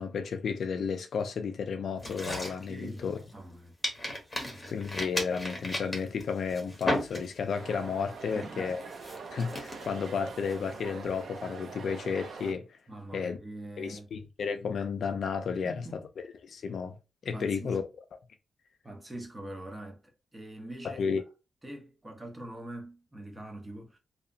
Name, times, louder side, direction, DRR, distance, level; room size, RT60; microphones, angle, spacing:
voice 1, 0.0-3.2 4.7-8.8 9.3-12.7 13.1-13.4 13.8-15.8 16.4-17.0 17.2-17.8 20.8-21.2, left 6 dB, 65° left, 0.3 m, -32 dB
sound 1, 2.0-3.5 3.8-7.6 8.0-8.3 8.8-11.1, left 1 dB, 15° left, 0.8 m, -35 dB
voice 2, 2.7-3.1 3.3-3.7 4.2-4.8 8.2-8.8 12.9-14.1 15.5-16.1 17.3-17.8 18.8-21.0 21.6-24.0, right 1 dB, 15° right, 0.7 m, -43 dB
sound 2, 7.5-12.5, right 4 dB, 65° right, 0.4 m, -44 dB
2.8 x 2.0 x 2.5 m
wide cardioid pair, 125°, 0 cm